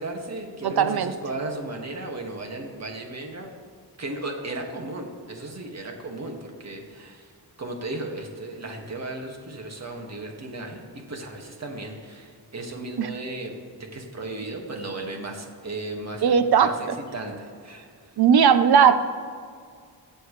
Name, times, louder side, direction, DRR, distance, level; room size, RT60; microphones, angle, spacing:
voice 1, 0.0-3.5 4.0-7.3 7.6-10.8 11.1-18.2, right 2 dB, 40° right, 2 dB, 2.1 m, -35 dB
voice 2, 0.6-1.1 13.0-13.1 16.2-16.7 18.2-18.9, right 7 dB, 65° right, 11 dB, 0.9 m, -17 dB
21.5 x 7.8 x 3.3 m, 2.2 s
cardioid pair, 85°, 41 cm